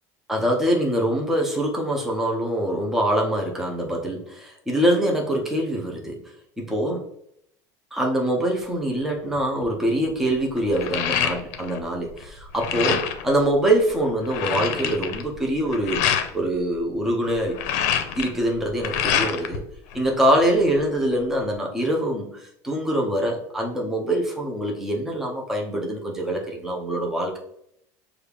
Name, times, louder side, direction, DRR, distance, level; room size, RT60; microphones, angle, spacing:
voice 1, 0.3-6.2 6.6-7.0 7.9-17.6 18.2-19.6 19.9-27.4, right 1 dB, 5° right, 0 dB, 0.6 m, -24 dB
sound 1, 9.4-9.6 10.1-11.8 12.1-13.3 13.8-13.9 14.1-16.3 17.3-19.6 19.9-20.8, left 8 dB, 75° left, 0.6 m, -26 dB
6.2 x 2.4 x 3.4 m, 0.72 s
cardioid pair, 165°, 9 cm